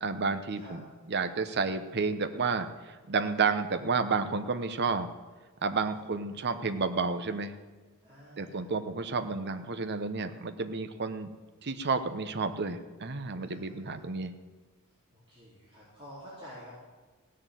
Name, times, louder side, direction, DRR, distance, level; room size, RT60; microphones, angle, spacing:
voice 1, 0.0-5.1 5.6-7.5 8.4-11.3 11.6-14.3, right 4 dB, 50° right, 9 dB, 0.9 m, -31 dB
voice 2, 8.0-8.7 13.4-14.0 15.1-16.8, equal, 25° right, -9 dB, 4.0 m, -50 dB
16.5 x 6.7 x 9.1 m, 1.3 s
head